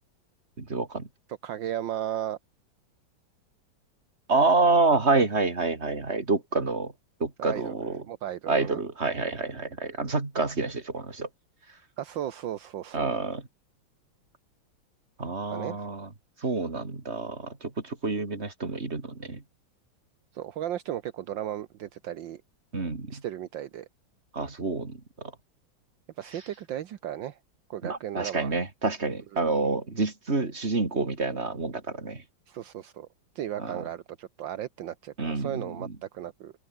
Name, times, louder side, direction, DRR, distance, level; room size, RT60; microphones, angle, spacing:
voice 1, 0.6-1.1 4.3-6.9 7.2-8.0 8.5-11.3 12.9-13.4 15.2-16.1 16.4-19.4 22.7-23.2 24.3-25.3 27.8-32.2 33.6-33.8 35.2-36.0, right 3 dB, 30° right, 3.6 m, -28 dB
voice 2, 1.4-2.4 7.4-8.8 12.0-13.1 15.5-15.8 20.3-22.4 23.1-23.9 26.2-27.4 27.7-28.6 29.3-29.4 32.5-33.1 33.4-36.5, right 11 dB, 70° right, 1.7 m, -35 dB
open air
omnidirectional pair, 2.2 m